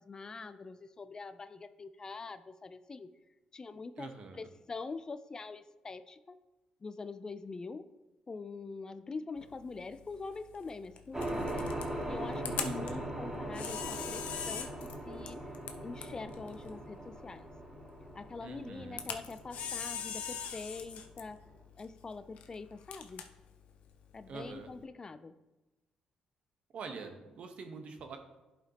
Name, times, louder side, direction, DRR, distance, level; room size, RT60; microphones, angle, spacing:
voice 1, 0.0-3.1 3.5-4.1 4.3-6.4 6.8-7.9 8.3-15.4 15.8-17.4 18.1-21.4 21.8-23.2 24.1-25.4, left 4 dB, 30° left, 12 dB, 0.4 m, -44 dB
voice 2, 4.0-4.5 12.6-13.1 18.4-19.1 24.3-24.7 26.7-28.2, right 4 dB, 65° right, 5 dB, 1.0 m, -45 dB
Camera, 9.4-24.8, left 7 dB, 75° left, 0.7 m, -44 dB
sound 1, 11.1-21.3, right 1 dB, 20° right, 2.4 m, -40 dB
11.0 x 5.0 x 2.9 m, 1.1 s
cardioid pair, 80°, 2 cm